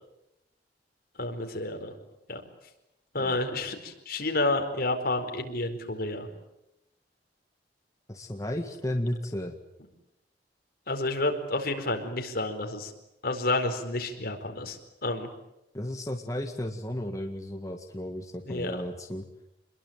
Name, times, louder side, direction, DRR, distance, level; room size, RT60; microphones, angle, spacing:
voice 1, 1.2-1.9 2.3-2.4 3.1-6.3 10.9-12.9 13.2-15.3 18.4-18.8, left 2 dB, 55° left, 5 dB, 4.6 m, -30 dB
voice 2, 8.1-9.6 15.7-19.3, left 1 dB, 20° left, 3 dB, 1.8 m, -34 dB
27.5 x 22.0 x 9.1 m, 0.89 s
head